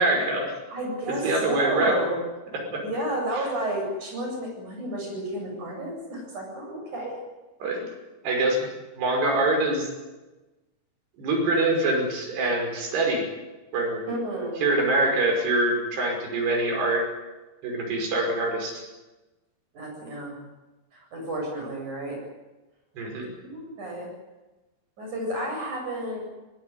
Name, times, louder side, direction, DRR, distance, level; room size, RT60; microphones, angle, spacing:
voice 1, 0.0-0.5 1.2-2.0 2.7-2.8 7.6-7.8 8.2-8.7 8.9-9.9 11.2-13.3 13.7-14.0 14.6-17.1 17.6-18.8 23.0-23.3, right 2 dB, 85° right, 2 dB, 7.7 m, -24 dB
voice 2, 0.7-2.2 2.8-7.1 14.1-14.7 19.7-20.4 20.9-22.2 23.1-24.1 25.0-26.2, right 1 dB, 50° right, 1 dB, 9.1 m, -31 dB
22.5 x 19.5 x 9.8 m, 1.1 s
omnidirectional pair, 4.6 m